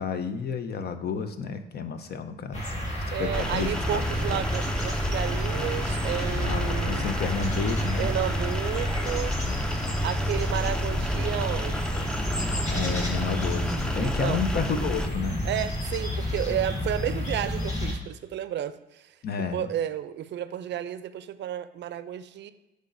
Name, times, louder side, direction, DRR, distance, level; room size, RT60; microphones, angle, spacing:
voice 1, 0.0-2.7 3.2-4.4 6.4-8.1 9.4-9.6 12.7-15.4 19.2-19.7, left 6 dB, 55° left, 9 dB, 0.7 m, -31 dB
sound 1, 2.5-17.9, equal, 35° left, 2.1 m, -30 dB
voice 2, 3.1-7.1 8.0-9.4 10.0-12.1 14.0-14.4 15.4-19.1 19.5-22.5, right 11 dB, 65° right, 13 dB, 0.5 m, -32 dB
sound 2, 3.3-15.1, equal, 5° left, 0.4 m, -32 dB
8.0 x 5.1 x 2.6 m, 1.0 s
cardioid pair, 90°, 20 cm